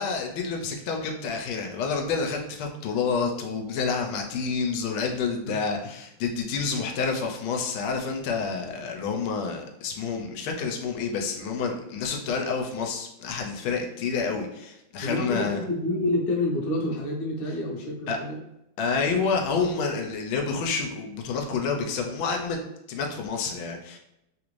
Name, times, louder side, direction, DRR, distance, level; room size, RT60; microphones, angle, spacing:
voice 1, 0.0-15.6 18.1-18.2 18.8-22.6 22.9-24.0, left 5 dB, 90° left, 2 dB, 1.4 m, -28 dB
voice 2, 15.0-18.4, left 1 dB, 65° left, -1 dB, 1.2 m, -28 dB
3.5 x 2.5 x 3.0 m, 0.85 s
omnidirectional pair, 2.2 m